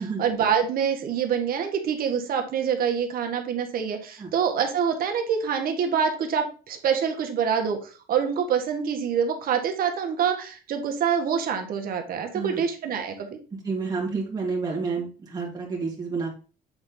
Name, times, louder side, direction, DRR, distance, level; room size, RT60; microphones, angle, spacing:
voice 1, 0.0-13.4, right 7 dB, 60° right, 4 dB, 1.4 m, -26 dB
voice 2, 13.6-16.3, right 4 dB, 25° right, -2 dB, 2.3 m, -29 dB
7.9 x 4.0 x 3.9 m, 0.36 s
cardioid pair, 110°, 17 cm